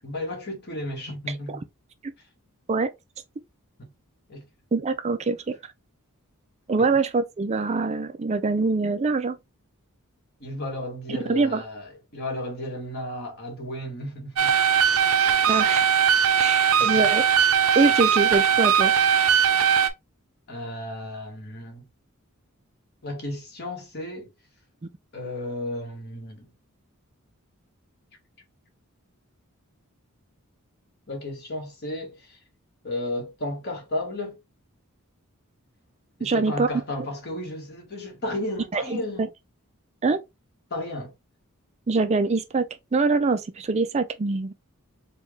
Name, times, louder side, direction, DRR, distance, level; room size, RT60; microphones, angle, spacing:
voice 1, 0.0-1.7 3.8-3.9 4.3-4.5 6.8-6.9 10.4-14.6 16.8-16.9 20.5-21.9 23.0-24.3 25.1-26.5 31.1-32.4 32.8-34.4 36.2-39.3 40.7-41.1, left 1 dB, 50° left, 1.6 m, -33 dB
voice 2, 4.7-5.5 6.7-9.4 11.3-11.6 15.5-15.9 16.4-17.2 17.7-18.9 36.2-36.7 38.7-39.3 40.0-40.2 41.9-42.7 42.9-44.5, right 3 dB, 30° right, 0.4 m, -24 dB
sound 1, 14.4-19.9, right 8 dB, 75° right, 0.6 m, -20 dB
4.5 x 2.3 x 3.2 m
head